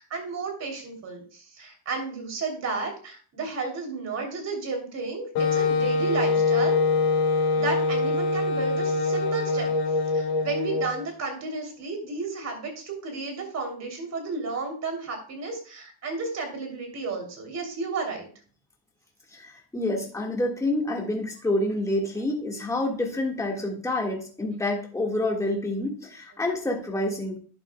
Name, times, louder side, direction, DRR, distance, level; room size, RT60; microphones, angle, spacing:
voice 1, 0.0-6.8 7.5-9.7 10.1-18.3, right 3 dB, 40° right, 3 dB, 3.1 m, -32 dB
Wind instrument woodwind instrument, 5.3-11.0, left 3 dB, 70° left, 2.0 m, -24 dB
voice 2, 19.3-27.3, left 1 dB, 10° left, 0 dB, 1.7 m, -28 dB
12.0 x 8.8 x 2.3 m, 0.42 s
cardioid pair, 175°, 38 cm